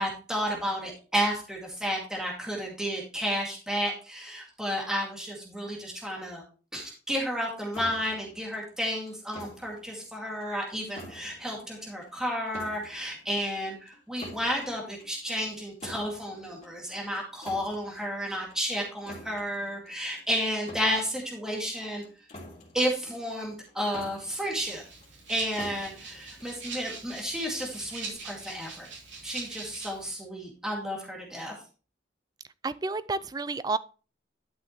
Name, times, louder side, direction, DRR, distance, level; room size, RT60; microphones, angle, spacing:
voice 1, 0.0-6.4 6.7-22.0 22.7-24.8 25.3-28.9 29.2-31.5, equal, 5° right, 2.2 m, -32 dB
sound 1, 7.7-27.1, left 1 dB, 35° left, 3.0 m, -48 dB
Rattle (instrument), 24.6-30.1, right 4 dB, 70° right, 3.3 m, -42 dB
voice 2, 32.6-33.8, right 3 dB, 20° right, 0.3 m, -30 dB
11.5 x 6.2 x 3.0 m
head